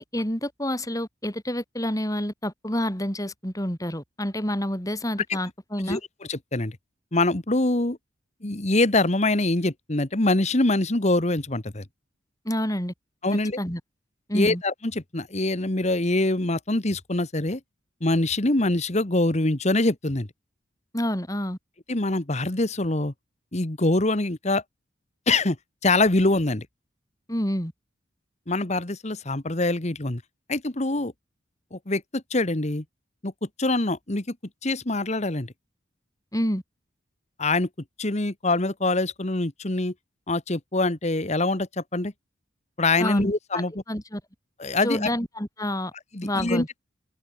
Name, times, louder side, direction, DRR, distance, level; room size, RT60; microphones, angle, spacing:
voice 1, 0.0-6.0 12.4-12.9 13.6-13.8 14.3-14.6 20.9-21.6 27.3-27.7 36.3-36.6 43.0-43.6 43.9-44.2 44.8-45.9 46.2-46.7, left 1 dB, 20° left, 6.8 m, -28 dB
voice 2, 6.3-6.8 7.1-8.0 8.4-11.8 13.2-13.6 14.3-17.6 18.0-20.3 21.9-23.1 23.5-24.6 25.3-25.6 25.8-26.7 28.5-30.2 30.5-31.1 31.7-32.8 33.2-33.3 33.6-34.3 34.6-35.5 37.4-37.7 38.0-39.9 40.3-42.1 42.8-43.7 44.6-45.1 46.1-46.6, left 2 dB, 35° left, 1.5 m, -24 dB
open air
head